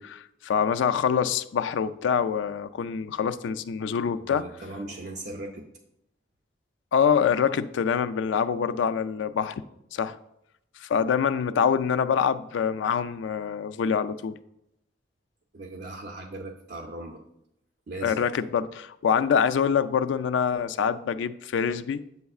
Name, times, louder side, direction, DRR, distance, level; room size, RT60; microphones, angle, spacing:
voice 1, 0.0-4.5 6.9-9.5 9.9-10.2 10.8-14.4 18.0-22.0, left 7 dB, 80° left, 12 dB, 0.3 m, -25 dB
voice 2, 4.2-5.7 15.5-17.2 17.9-18.2, right 2 dB, 55° right, 1 dB, 0.6 m, -38 dB
8.5 x 6.8 x 2.4 m, 0.81 s
head